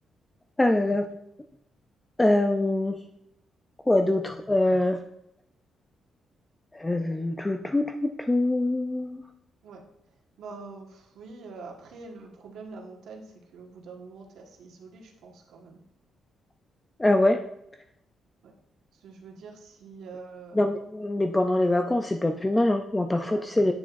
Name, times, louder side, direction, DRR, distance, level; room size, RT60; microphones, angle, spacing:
voice 1, 0.6-1.1 2.2-3.0 3.9-5.0 6.7-9.2 17.0-17.4 20.6-23.7, left 1 dB, 10° left, 5 dB, 0.3 m, -24 dB
voice 2, 10.4-15.8 18.4-18.5 18.9-20.6 23.3-23.4, right 4 dB, 85° right, 1 dB, 1.4 m, -45 dB
8.8 x 6.9 x 2.5 m, 0.78 s
cardioid pair, 175°, 0 cm